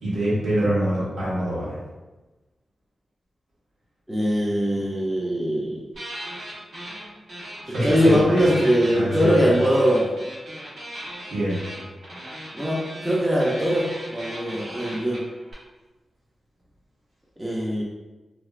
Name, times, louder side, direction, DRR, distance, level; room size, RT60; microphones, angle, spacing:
voice 1, 0.0-1.8 7.6-8.5 8.9-9.5 11.3-11.6, right 1 dB, 75° right, -8 dB, 1.5 m, -24 dB
voice 2, 4.1-5.8 7.8-10.1 12.5-15.2 17.4-17.8, equal, 10° right, -5 dB, 0.5 m, -21 dB
sound 1, 5.9-7.0 7.3-15.5, equal, 60° right, 1.3 m, -37 dB
3.2 x 2.7 x 2.4 m, 1.1 s
wide cardioid pair, 170°, 0 cm